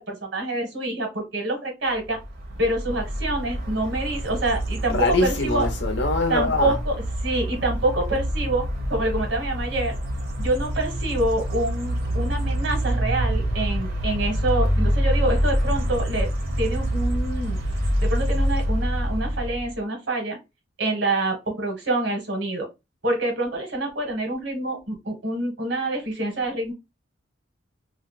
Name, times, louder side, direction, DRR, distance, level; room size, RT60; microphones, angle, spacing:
voice 1, 0.0-2.2 2.6-5.7 6.3-6.9 7.2-9.9 10.4-16.3 16.6-17.6 18.0-20.4 20.8-22.7 23.0-26.7, right 2 dB, 70° right, 1.4 m, -26 dB
sound 1, 2.2-19.7, equal, 55° right, 1.0 m, -26 dB
voice 2, 4.9-6.8, left 3 dB, 65° left, 0.9 m, -23 dB
2.7 x 2.1 x 4.0 m
head